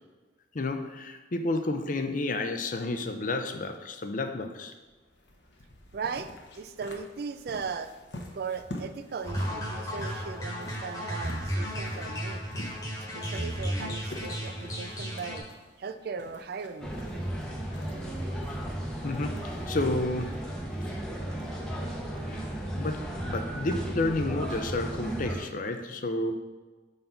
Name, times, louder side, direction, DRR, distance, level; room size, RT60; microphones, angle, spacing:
voice 1, 0.5-4.7 19.0-20.3 22.3-22.5 22.7-26.3, left 2 dB, 45° left, 7 dB, 0.5 m, -31 dB
sound 1, 4.8-22.5, left 1 dB, 65° left, 0.9 m, -48 dB
voice 2, 5.9-6.3 6.6-7.9 8.3-12.4 13.0-15.4 15.8-16.9, right 5 dB, 55° right, 9 dB, 0.3 m, -38 dB
sound 2, 9.2-15.4, equal, 20° left, 1.3 m, -34 dB
sound 3, 16.8-25.4, right 1 dB, 5° left, 0.9 m, -34 dB
5.2 x 4.0 x 5.7 m, 1.3 s
head